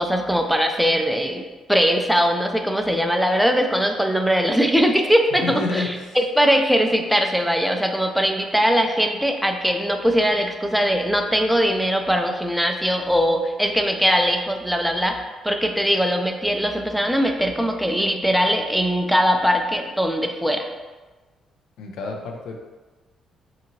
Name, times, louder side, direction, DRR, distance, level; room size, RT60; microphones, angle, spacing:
voice 1, 0.0-1.4 1.7-20.7, equal, ahead, 4 dB, 0.3 m, -21 dB
voice 2, 5.4-5.9 21.8-22.6, left 3 dB, 85° left, 2 dB, 0.4 m, -28 dB
2.7 x 2.6 x 2.7 m, 1.2 s
cardioid pair, 90°, 0 cm